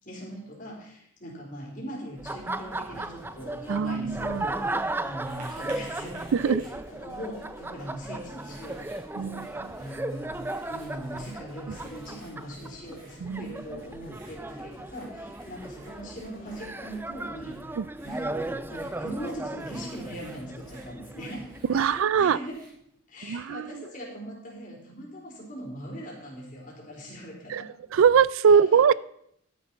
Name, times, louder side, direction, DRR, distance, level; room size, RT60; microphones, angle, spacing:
voice 1, 0.0-6.6 7.0-17.6 18.0-22.6 23.1-27.7 28.5-28.8, equal, 40° left, -2 dB, 4.0 m, -40 dB
sound 1, 2.2-17.0, left 2 dB, 70° left, 3.0 m, -55 dB
Laughter, 2.2-22.0, right 2 dB, 10° right, 0.4 m, -36 dB
voice 2, 3.7-4.5 6.3-6.6 9.2-9.5 13.2-13.5 17.8-17.9 21.7-22.4 23.3-23.8 27.5-28.9, right 7 dB, 80° right, 20 dB, 0.4 m, -22 dB
Writing, 5.2-23.0, right 1 dB, 40° right, 4.5 m, -53 dB
13.0 x 9.7 x 4.4 m, 0.72 s
head